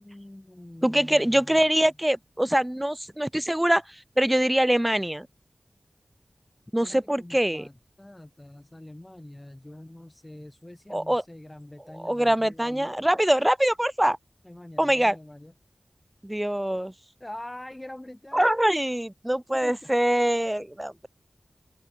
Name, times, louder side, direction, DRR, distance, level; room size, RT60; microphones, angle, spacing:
voice 1, 0.0-1.6 6.8-13.1 14.4-15.5 17.2-18.6 19.6-19.9, left 1 dB, 20° left, 6.5 m, -44 dB
voice 2, 0.8-5.3 6.7-7.6 10.9-11.2 12.0-14.2 14.8-15.2 16.2-16.9 18.3-21.1, right 1 dB, 10° right, 1.4 m, -24 dB
open air
wide cardioid pair, 80°, 0 cm